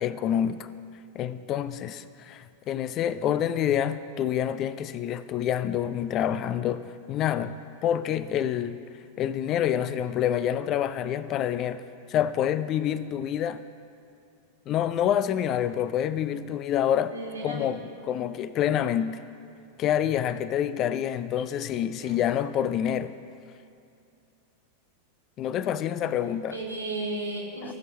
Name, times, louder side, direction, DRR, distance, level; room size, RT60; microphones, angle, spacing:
voice 1, 0.0-0.7 1.1-7.5 7.8-8.8 9.2-11.8 12.1-13.6 14.7-17.1 17.4-19.2 19.8-23.1 25.4-26.6 27.6-27.7, left 10 dB, 35° left, 14 dB, 0.3 m, -27 dB
voice 2, 17.1-17.7 21.9-22.2 26.5-27.7, right 2 dB, 80° right, -3 dB, 2.3 m, -34 dB
16.5 x 6.1 x 3.2 m, 2.5 s
figure-of-eight pair, 90°, 0 cm